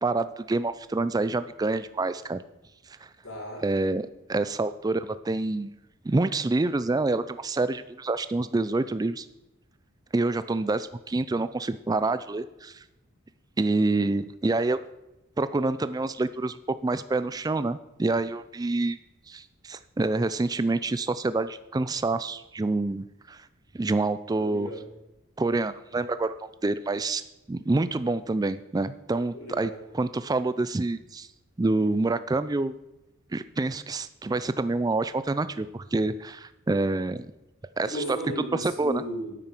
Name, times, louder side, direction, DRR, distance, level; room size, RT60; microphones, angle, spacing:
voice 1, 0.0-2.4 3.6-5.7 6.0-9.3 10.1-12.8 13.6-14.8 15.4-19.0 19.3-23.5 23.7-24.7 25.4-26.3 26.6-27.2 27.5-31.3 31.6-32.7 33.3-37.3 37.8-38.0 38.6-39.0, right 2 dB, 20° right, 13 dB, 0.3 m, -27 dB
voice 2, 3.2-3.6 24.4-24.8 29.3-29.8 37.9-39.3, equal, 70° left, -2 dB, 4.1 m, -35 dB
9.0 x 8.9 x 6.0 m, 0.92 s
head